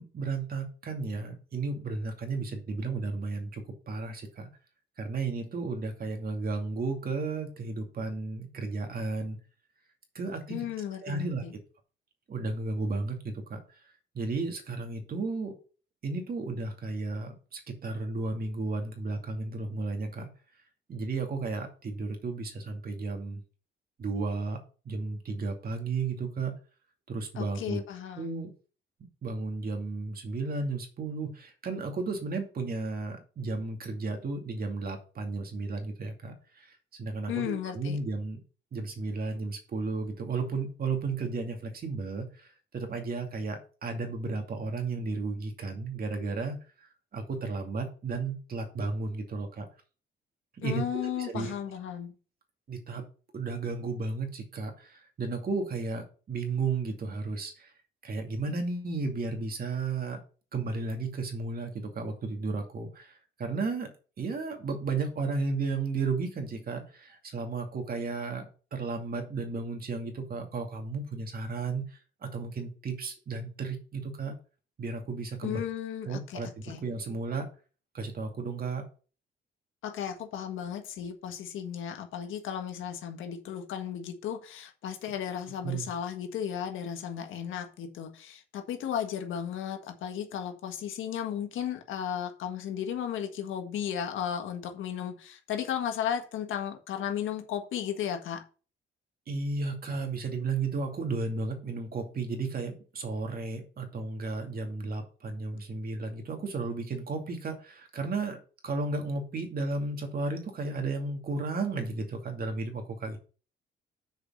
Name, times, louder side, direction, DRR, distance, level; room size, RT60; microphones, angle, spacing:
voice 1, 0.0-4.5 5.0-9.4 10.1-10.6 11.0-11.4 12.3-13.6 14.1-15.5 16.0-20.3 20.9-23.4 24.0-24.6 24.9-26.5 27.1-27.8 28.2-28.5 29.2-36.7 37.0-38.4 38.7-42.5 42.7-49.7 50.6-50.8 51.2-51.5 52.7-53.0 53.3-57.7 58.0-60.2 60.5-63.9 64.2-74.3 74.8-75.6 76.1-77.5 77.9-78.8 85.6-85.9 99.3-113.2, right 3 dB, 50° right, 2.5 m, -33 dB
voice 2, 10.5-11.5 27.3-28.5 37.3-38.0 50.6-52.1 75.4-76.8 79.8-98.4, left 9 dB, 80° left, 1.6 m, -35 dB
6.4 x 5.2 x 6.2 m
cardioid pair, 90°, 20 cm